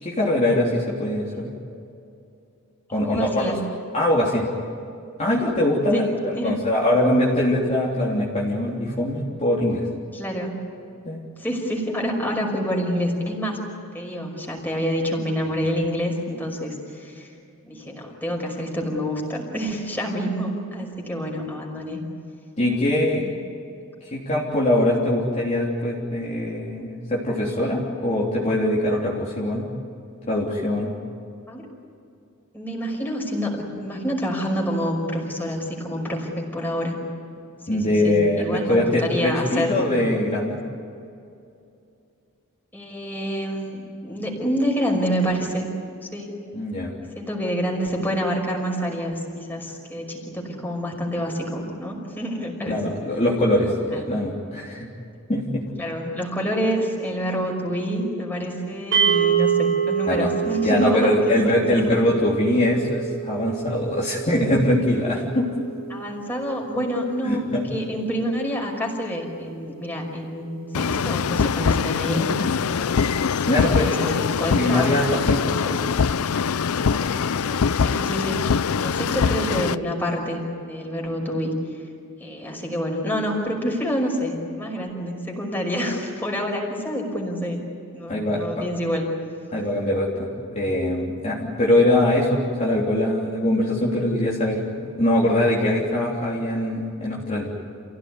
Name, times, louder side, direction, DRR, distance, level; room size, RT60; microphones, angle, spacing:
voice 1, 0.0-1.5 2.9-3.5 3.9-4.4 5.2-9.9 11.0-11.2 22.6-23.2 24.1-29.7 30.2-30.9 37.7-40.6 46.5-46.9 52.7-54.9 55.3-55.6 60.1-60.3 60.6-65.5 67.3-67.6 73.5-74.0 74.5-75.8 76.9-77.1 88.1-88.6 89.5-97.5, left 1 dB, 30° left, -5 dB, 3.4 m, -22 dB
voice 2, 2.9-3.6 5.9-6.1 6.3-6.6 10.1-10.6 11.4-13.6 13.9-17.3 17.6-22.0 22.9-23.3 31.5-31.7 32.5-37.0 37.7-39.8 42.7-45.7 46.0-46.4 47.1-52.8 53.9-54.2 55.8-61.5 61.9-62.0 65.9-67.4 67.7-72.3 72.7-73.0 73.8-74.9 77.4-78.4 78.8-81.5 82.2-87.6 87.9-89.0, equal, 10° left, 0 dB, 5.6 m, -27 dB
sound 1, 58.9-69.2, right 8 dB, 55° right, 4.4 m, -28 dB
sound 2, 70.7-79.7, left 6 dB, 70° left, 0.5 m, -23 dB
29.0 x 17.0 x 9.8 m, 2.5 s
head